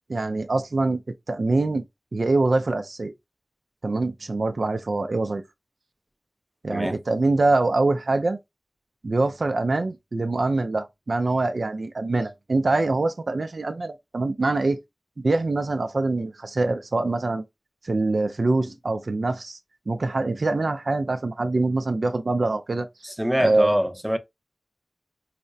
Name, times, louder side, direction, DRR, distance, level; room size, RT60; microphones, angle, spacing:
voice 1, 0.1-1.0 1.3-1.8 2.1-3.1 3.8-5.4 6.6-8.4 9.0-14.8 15.2-17.4 17.8-19.6 19.9-22.9 23.4-23.7, right 2 dB, 65° right, 0.4 m, -24 dB
voice 2, 6.7-7.0 23.0-24.2, equal, 5° right, 0.7 m, -24 dB
4.8 x 2.1 x 2.6 m
wide cardioid pair, 60°, 0 cm